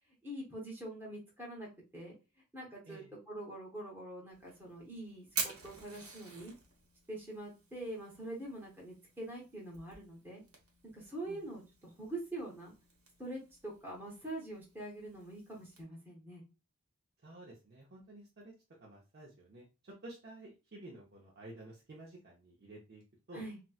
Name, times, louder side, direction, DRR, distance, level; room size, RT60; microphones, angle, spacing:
voice 1, 0.2-2.1 2.5-6.5 7.1-10.4 10.8-12.7 13.2-16.4 23.3-23.6, right 1 dB, 10° right, -4 dB, 0.9 m, -44 dB
Fire, 4.3-15.8, right 4 dB, 85° right, 1.0 m, -48 dB
voice 2, 17.2-18.5 18.8-23.0 23.3-23.4, right 1 dB, 50° right, -4 dB, 0.7 m, -52 dB
4.1 x 2.1 x 2.3 m, 0.30 s
head